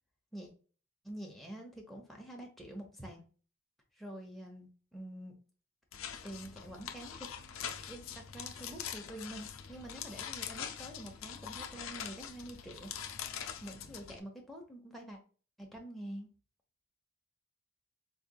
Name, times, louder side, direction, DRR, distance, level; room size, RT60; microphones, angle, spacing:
voice 1, 1.0-3.2 4.0-5.3 6.2-7.3 7.9-12.9 13.6-15.2 15.6-16.3, right 1 dB, ahead, -1 dB, 0.9 m, -47 dB
sound 1, 5.9-14.2, left 8 dB, 70° left, 0.5 m, -43 dB
3.9 x 3.3 x 2.3 m, 0.39 s
head